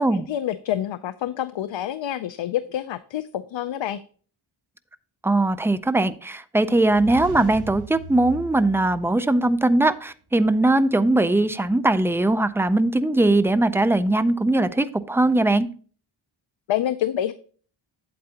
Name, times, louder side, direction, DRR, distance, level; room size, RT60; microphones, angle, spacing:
voice 1, 0.1-4.0 16.7-17.3, left 11 dB, 65° left, 12 dB, 0.5 m, -27 dB
voice 2, 5.2-15.7, right 2 dB, 5° right, 12 dB, 0.3 m, -20 dB
sound 1, 6.8-9.7, right 3 dB, 85° right, 1.3 m, -39 dB
8.6 x 7.9 x 2.8 m, 0.42 s
wide cardioid pair, 105°, 48 cm